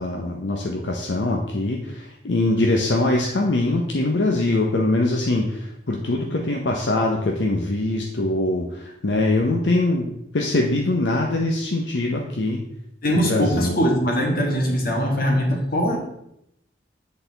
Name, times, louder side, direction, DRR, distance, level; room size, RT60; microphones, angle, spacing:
voice 1, 0.0-12.6 13.1-13.8, left 2 dB, 70° left, 0 dB, 0.7 m, -23 dB
voice 2, 13.0-16.0, equal, 50° left, 0 dB, 1.5 m, -21 dB
8.2 x 4.1 x 3.9 m, 0.79 s
head